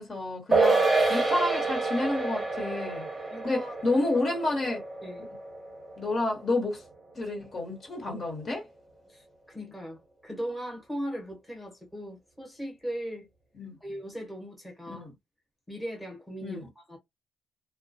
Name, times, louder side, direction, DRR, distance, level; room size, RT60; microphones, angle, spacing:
voice 1, 0.0-3.1 3.4-4.8 6.0-6.8 7.1-8.6 13.6-13.8 14.9-15.1 16.4-16.7, left 2 dB, 45° left, 1.2 m, -30 dB
sound 1, 0.5-7.2 7.5-7.6, right 3 dB, 20° right, 0.8 m, -28 dB
voice 2, 3.3-4.0 5.0-5.3 9.1-13.3 13.8-15.1 15.7-17.0, equal, 5° left, 1.0 m, -38 dB
2.2 x 2.1 x 2.6 m
cardioid pair, 90°, 0 cm